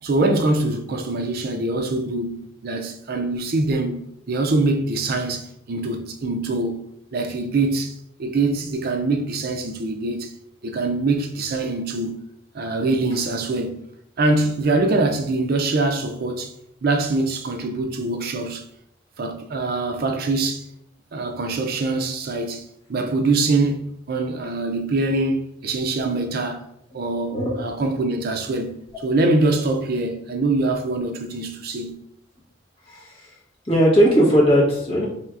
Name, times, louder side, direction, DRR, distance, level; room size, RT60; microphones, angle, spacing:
voice 1, 0.0-6.8 7.1-10.3 10.6-12.2 12.5-13.8 14.2-16.5 16.8-18.6 19.2-20.7 21.1-22.6 22.9-26.7 26.9-31.9, right 2 dB, 55° right, 0.4 m, -23 dB
voice 2, 32.9-33.3 33.6-35.0, equal, 35° left, 1.2 m, -18 dB
4.3 x 3.3 x 2.4 m
head